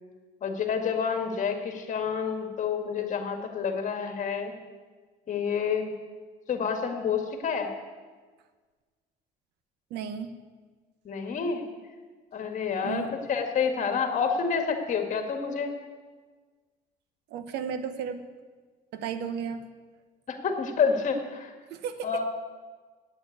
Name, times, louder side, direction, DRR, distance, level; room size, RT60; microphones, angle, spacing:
voice 1, 0.4-4.5 5.3-5.9 6.5-7.7 11.1-11.6 12.3-15.7 20.3-21.5 22.0-22.2, left 6 dB, 50° left, 5 dB, 1.8 m, -28 dB
voice 2, 9.9-10.4 12.8-13.1 17.3-18.2 18.9-19.7 21.7-22.1, right 7 dB, 80° right, 10 dB, 1.0 m, -34 dB
8.8 x 7.9 x 9.2 m, 1.4 s
cardioid pair, 110°, 17 cm